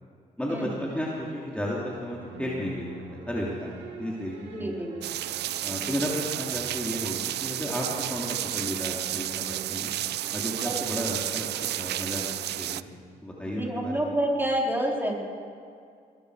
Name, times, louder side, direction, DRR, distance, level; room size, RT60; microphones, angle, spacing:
voice 1, 0.4-4.9 5.6-9.9 10.3-12.2 12.6-12.9 13.2-14.1, equal, 5° left, -4 dB, 3.1 m, -33 dB
sound 1, 0.9-13.0, right 5 dB, 85° right, 1.5 m, -47 dB
voice 2, 4.5-4.9 10.6-10.7 13.4-15.2, right 1 dB, 10° right, -1 dB, 4.2 m, -28 dB
sound 2, 5.0-12.8, right 13 dB, 70° right, 0.4 m, -32 dB
22.0 x 12.0 x 5.0 m, 2.3 s
supercardioid pair, 50°, 18 cm